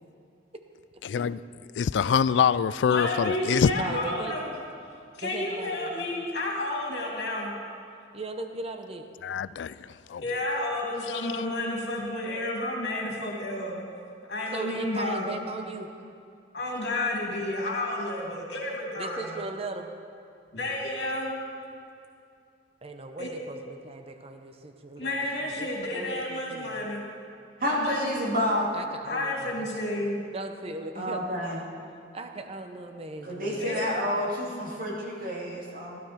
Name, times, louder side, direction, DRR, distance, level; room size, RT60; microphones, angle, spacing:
voice 1, 1.0-1.4 1.8-4.0 9.2-10.2 11.1-11.2, left 7 dB, 90° left, 0.3 m, -25 dB
voice 2, 2.8-4.5 5.1-7.5 10.2-13.8 14.3-15.3 16.5-19.4 20.5-21.3 23.2-23.3 25.0-27.0 27.6-28.0 29.0-30.2 33.6-33.8, left 1 dB, 70° left, 2.8 m, -31 dB
voice 3, 3.7-4.4 5.2-6.2 8.1-9.1 14.5-15.9 19.0-19.9 22.8-26.8 28.7-29.7 30.0-30.1 30.3-31.4 32.1-33.8, right 2 dB, 35° right, 0.8 m, -38 dB
voice 4, 27.6-28.7 31.0-31.6 33.2-36.0, equal, 55° right, 2.6 m, -29 dB
16.0 x 12.0 x 4.3 m
head